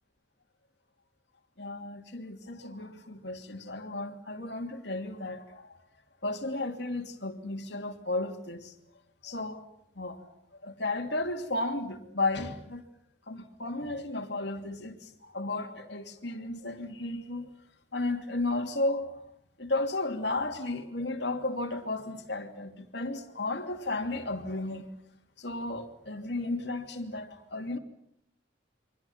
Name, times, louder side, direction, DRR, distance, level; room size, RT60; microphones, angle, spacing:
voice 1, 1.6-5.8 6.2-8.7 9.2-9.6 9.9-10.3 10.6-12.8 13.3-17.5 17.9-19.1 19.6-24.9 25.4-27.8, left 2 dB, 60° left, 2.8 m, -34 dB
29.5 x 24.0 x 5.8 m
head